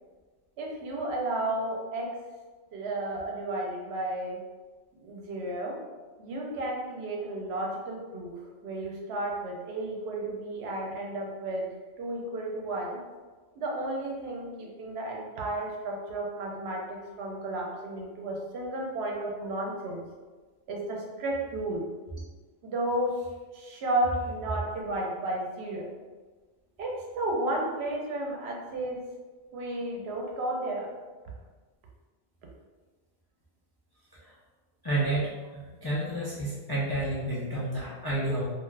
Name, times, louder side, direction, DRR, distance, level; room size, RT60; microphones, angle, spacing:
voice 1, 0.6-2.2 2.7-4.4 5.0-5.8 6.2-11.7 12.0-13.0 13.6-20.0 20.7-21.9 22.6-23.3 23.5-25.9 26.8-29.1 29.5-30.9, right 1 dB, 75° right, -1 dB, 0.9 m, -33 dB
voice 2, 34.8-38.4, right 1 dB, 35° left, -8 dB, 0.4 m, -30 dB
2.5 x 2.3 x 3.2 m, 1.3 s
omnidirectional pair, 1.1 m